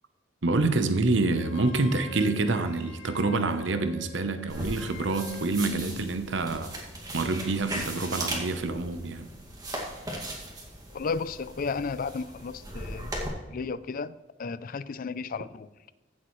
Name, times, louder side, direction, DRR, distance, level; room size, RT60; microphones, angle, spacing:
voice 1, 0.4-6.7 7.1-9.3, right 3 dB, 75° right, 9 dB, 0.8 m, -27 dB
Wind instrument woodwind instrument, 1.3-5.5, left 6 dB, 80° left, 2.1 m, -45 dB
sound 1, 4.5-13.3, right 1 dB, 20° right, 2.1 m, -38 dB
voice 2, 10.9-13.1 13.5-15.7, left 4 dB, 45° left, 16 dB, 0.4 m, -33 dB
15.5 x 7.6 x 3.2 m, 1.1 s
head